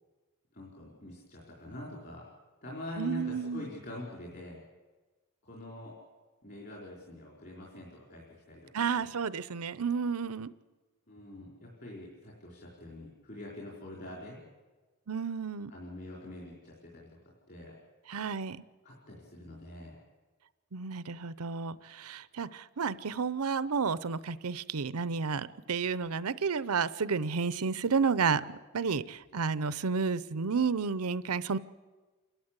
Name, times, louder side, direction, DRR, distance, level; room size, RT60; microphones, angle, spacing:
voice 1, 0.5-2.2 2.6-4.6 5.5-5.9 6.4-9.1 11.1-14.4 15.7-17.2 17.5-17.8 18.8-20.0, left 1 dB, 50° left, -4 dB, 4.3 m, -45 dB
voice 2, 3.0-3.6 8.7-10.5 15.1-15.7 18.1-18.6 20.7-31.6, right 5 dB, 90° right, 17 dB, 0.7 m, -31 dB
28.5 x 12.5 x 8.2 m, 1.3 s
head